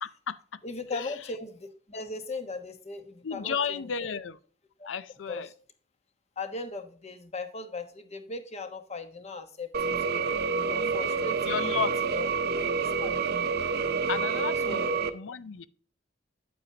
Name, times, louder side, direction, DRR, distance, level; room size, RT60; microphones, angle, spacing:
voice 1, 0.0-0.4 0.9-1.1 3.2-4.4 4.8-5.5 11.5-11.9 14.1-15.7, left 6 dB, 85° left, 0.5 m, -33 dB
voice 2, 0.6-4.1 4.8-4.9 5.3-5.5 6.4-9.7 10.6-12.3 12.7-13.2 14.6-15.0, left 3 dB, 35° left, 1.2 m, -38 dB
sound 1, 9.7-15.1, right 5 dB, 60° right, 0.7 m, -28 dB
8.8 x 8.7 x 2.8 m
head